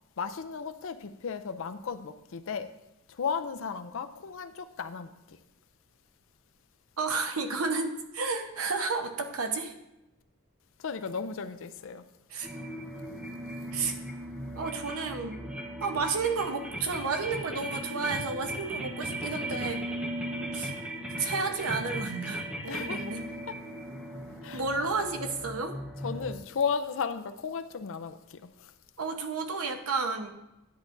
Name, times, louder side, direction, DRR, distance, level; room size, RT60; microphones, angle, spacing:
voice 1, 0.2-2.7 3.1-5.4 10.8-12.0 22.7-23.1 24.4-24.6 26.0-28.7, left 6 dB, 65° left, 0.5 m, -35 dB
voice 2, 7.0-9.7 12.3-12.5 13.7-13.9 14.6-15.4 15.8-19.8 20.5-20.7 21.2-23.2 24.5-25.8 29.0-30.3, right 4 dB, 90° right, 0.9 m, -31 dB
sound 1, 12.4-26.4, right 1 dB, 5° right, 1.0 m, -37 dB
10.5 x 7.1 x 2.6 m
head